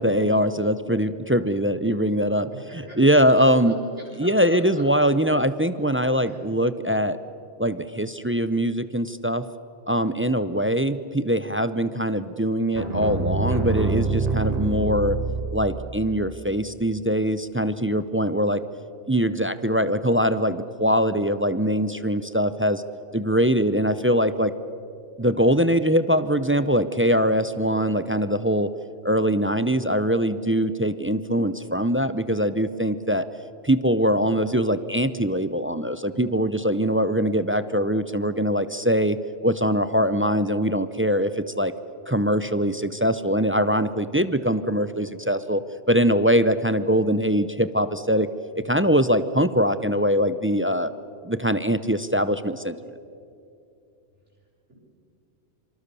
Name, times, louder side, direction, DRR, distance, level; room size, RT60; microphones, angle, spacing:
voice 1, 0.0-2.5 3.0-3.8 4.2-7.2 7.6-9.4 9.9-15.2 15.5-18.6 19.1-22.8 23.1-24.5 25.2-28.7 29.0-33.3 33.6-39.2 39.4-41.7 42.1-48.3 48.7-50.9 51.2-52.8, equal, 15° right, 13 dB, 0.5 m, -22 dB
voice 2, 2.7-3.7 4.2-4.8 6.1-6.4, equal, 80° right, -6 dB, 7.0 m, -43 dB
sound 1, 12.7-15.9, right 3 dB, 35° right, 2.6 m, -25 dB
26.5 x 25.0 x 6.9 m, 2.6 s
omnidirectional pair, 1.2 m